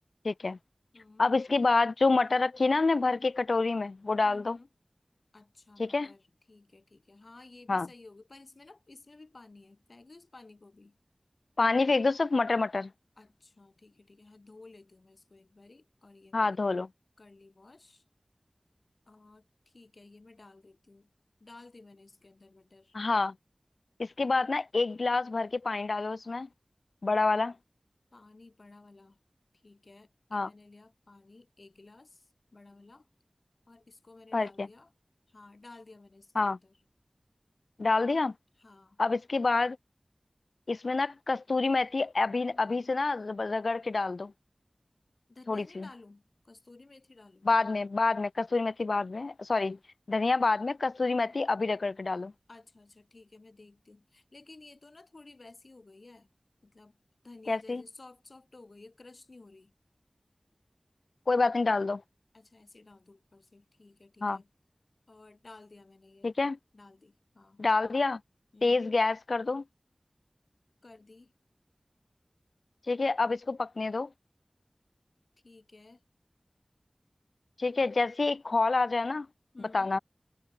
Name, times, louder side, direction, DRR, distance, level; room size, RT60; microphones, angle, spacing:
voice 1, 0.2-0.6 1.2-4.6 5.8-6.1 7.7-7.9 11.6-12.9 16.3-16.9 22.9-23.3 24.0-26.5 27.0-27.5 30.3-30.5 34.3-34.7 36.3-36.6 37.8-38.3 39.0-39.8 40.7-44.3 45.5-45.9 47.4-49.8 50.1-52.3 57.5-57.8 61.3-62.0 64.2-64.4 66.2-66.6 67.6-68.2 68.6-69.6 72.9-74.1 77.6-79.3 79.7-80.0, left 3 dB, 85° left, 1.0 m, -27 dB
voice 2, 0.9-1.3 4.2-4.7 5.3-11.0 13.2-16.6 17.2-18.0 19.1-21.1 21.4-23.0 28.1-29.2 29.6-33.1 33.7-34.9 35.3-36.8 38.6-39.0 45.3-47.5 52.5-56.3 56.6-57.0 57.2-59.7 62.3-64.5 65.1-66.4 66.7-67.7 68.5-68.9 70.8-71.3 75.4-76.0 79.5-80.0, left 3 dB, 65° left, 7.9 m, -54 dB
wide cardioid pair, 60°, 0 cm